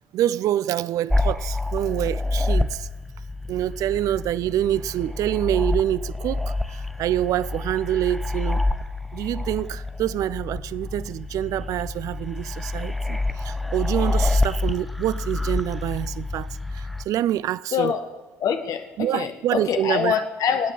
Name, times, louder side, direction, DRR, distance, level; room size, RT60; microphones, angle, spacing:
voice 1, 0.1-2.9 3.5-8.6 9.1-17.9 19.0-20.1, right 12 dB, 50° right, 0.4 m, -26 dB
sound 1, 1.1-17.1, left 2 dB, ahead, 0.9 m, -27 dB
voice 2, 17.7-18.0 18.4-20.7, left 7 dB, 50° left, 1.5 m, -24 dB
27.0 x 9.1 x 4.6 m
figure-of-eight pair, 55°, 8 cm